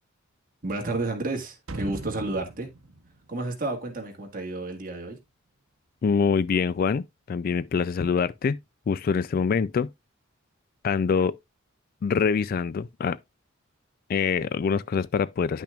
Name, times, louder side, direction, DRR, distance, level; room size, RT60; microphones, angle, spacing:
voice 1, 0.6-2.7 3.3-5.2, right 2 dB, 40° right, 1.8 m, -31 dB
sound 1, 1.7-4.5 4.8-4.9, right 2 dB, 75° right, 1.0 m, -40 dB
voice 2, 6.0-8.6 8.9-9.9 10.8-11.4 12.0-13.2 14.1-15.6, left 5 dB, 45° left, 0.3 m, -25 dB
10.5 x 5.9 x 2.4 m
head